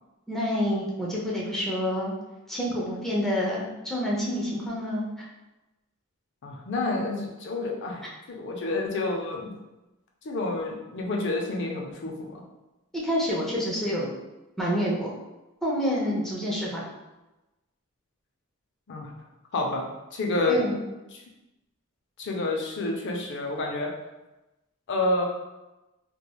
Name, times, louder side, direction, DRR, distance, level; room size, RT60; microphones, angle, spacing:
voice 1, 0.3-2.1 2.5-5.3 13.0-14.1 14.6-15.1 15.6-16.8 20.5-20.8, equal, ahead, -5 dB, 0.5 m, -28 dB
voice 2, 6.4-8.0 8.3-9.5 10.2-12.4 18.9-19.1 19.5-20.6 21.1-21.2 22.2-23.9 24.9-25.2, left 2 dB, 55° left, 0 dB, 0.5 m, -29 dB
3.1 x 2.2 x 2.2 m, 1.0 s
head